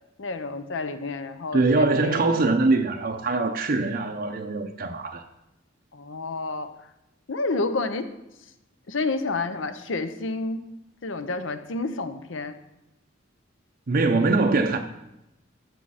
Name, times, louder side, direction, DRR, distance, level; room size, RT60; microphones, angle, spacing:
voice 1, 0.2-2.4 5.9-6.7 7.3-8.1 8.9-10.6 11.0-12.6, left 3 dB, 75° left, 0.8 m, -29 dB
voice 2, 1.5-5.2 13.9-14.8, right 3 dB, 50° right, 0.6 m, -23 dB
13.5 x 6.3 x 4.1 m
head